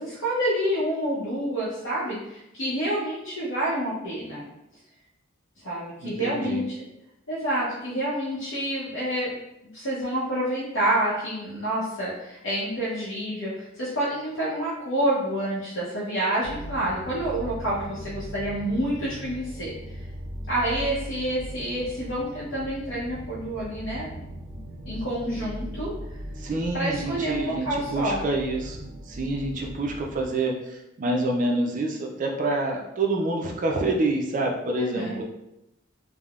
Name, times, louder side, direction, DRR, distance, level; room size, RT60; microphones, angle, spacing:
voice 1, 0.0-4.4 5.6-6.8 7.3-9.3 9.7-19.7 20.5-24.2 24.9-25.9 26.7-28.2 34.7-35.2, right 1 dB, 75° left, -8 dB, 0.7 m, -28 dB
voice 2, 6.0-6.6 26.4-35.2, right 2 dB, 40° right, 1 dB, 0.4 m, -27 dB
sound 1, 16.4-30.3, equal, 20° left, 0.6 m, -39 dB
3.4 x 2.0 x 2.3 m, 0.89 s
head